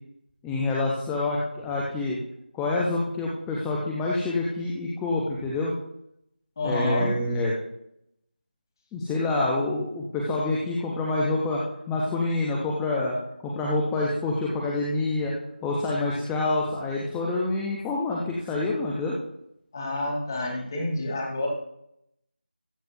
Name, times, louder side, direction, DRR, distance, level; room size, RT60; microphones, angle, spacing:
voice 1, 0.4-2.2 2.5-5.8 6.6-7.5 8.9-11.6 11.9-13.2 13.4-15.3 15.6-19.2, left 2 dB, ahead, -4 dB, 0.4 m, -27 dB
voice 2, 6.6-7.1 19.7-21.5, left 2 dB, 20° left, 0 dB, 3.0 m, -28 dB
20.5 x 9.4 x 2.5 m, 0.78 s
figure-of-eight pair, 170°, 5 cm